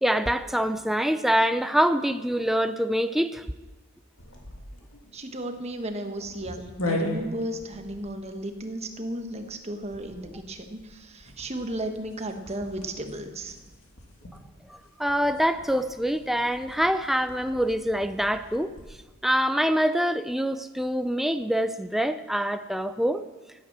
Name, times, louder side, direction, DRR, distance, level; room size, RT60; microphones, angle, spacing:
voice 1, 0.0-3.5 14.7-18.7 19.2-23.2, equal, ahead, 10 dB, 0.4 m, -25 dB
sound 1, 4.2-19.1, left 1 dB, 70° left, 2.5 m, -40 dB
voice 2, 5.1-13.6, right 1 dB, 30° right, 5 dB, 1.3 m, -34 dB
15.5 x 9.2 x 7.4 m, 1.2 s
head